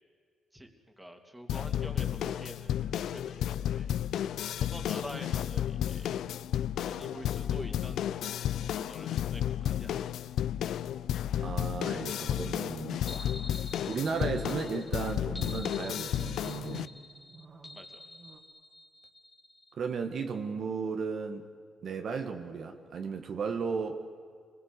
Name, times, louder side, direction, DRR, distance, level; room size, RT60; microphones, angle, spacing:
voice 1, 1.0-3.9 4.6-6.2 6.9-8.2 8.6-10.1 17.7-18.0, equal, 5° right, 4 dB, 3.0 m, -46 dB
sound 1, 1.5-16.9, left 10 dB, 75° left, 0.6 m, -32 dB
voice 2, 11.4-13.1 13.8-16.9 19.8-21.5 21.8-24.0, right 5 dB, 55° right, 5 dB, 1.7 m, -35 dB
sound 2, 12.1-18.4, right 3 dB, 30° right, 2.8 m, -54 dB
sound 3, 13.1-19.7, left 2 dB, 20° left, 2.2 m, -48 dB
26.5 x 21.0 x 8.2 m, 2.2 s
cardioid pair, 90°, 0 cm